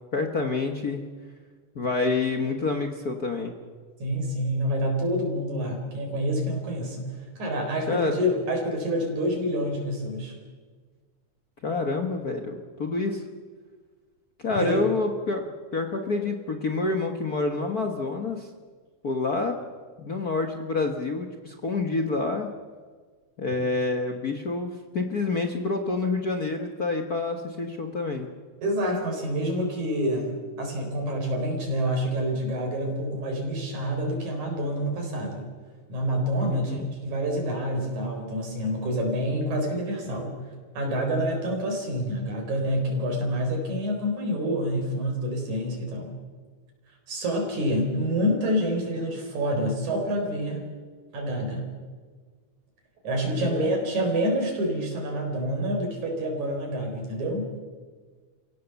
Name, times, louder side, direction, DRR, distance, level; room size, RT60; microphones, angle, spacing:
voice 1, 0.1-1.0 1.7-3.5 7.9-8.2 11.6-13.2 14.4-18.5 19.0-19.6 20.0-22.5 23.4-28.3 36.5-36.9 53.4-53.7, left 3 dB, 60° left, 4 dB, 0.9 m, -28 dB
voice 2, 4.0-7.1 7.4-10.4 14.6-14.8 28.6-35.5 35.9-40.3 40.8-46.1 47.1-50.7 51.1-51.7 53.0-57.5, equal, 65° right, 2 dB, 5.4 m, -27 dB
29.0 x 17.0 x 7.1 m, 1.5 s
omnidirectional pair, 3.7 m